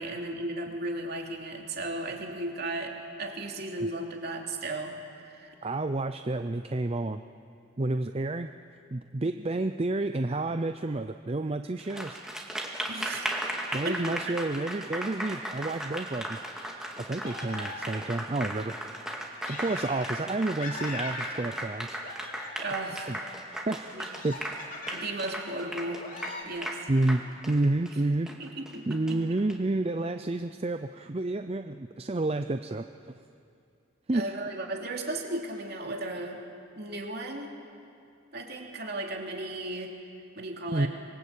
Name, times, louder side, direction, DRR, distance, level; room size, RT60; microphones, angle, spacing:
voice 1, 0.0-5.5 9.2-9.5 12.9-13.3 13.8-14.4 22.6-23.2 23.9-24.0 24.9-26.0 26.4-26.9 28.4-29.2 34.1-36.4 36.8-37.5 38.3-39.9 40.3-40.9, right 2 dB, 50° right, 1 dB, 3.0 m, -35 dB
voice 2, 5.6-7.2 7.8-8.5 8.9-12.2 13.7-16.4 17.1-18.7 19.5-22.0 23.1-24.4 26.9-28.3 28.9-33.2 34.1-34.3 40.7-40.9, right 2 dB, 30° right, 8 dB, 0.5 m, -30 dB
Applause, 11.8-29.5, right 1 dB, 5° right, 2.2 m, -37 dB
sound 1, 17.2-18.2 19.4-20.3 20.6-21.7 22.0-22.8 24.0-25.3 26.0-26.4, left 2 dB, 40° left, 3.6 m, -41 dB
26.0 x 23.0 x 8.4 m, 2.5 s
head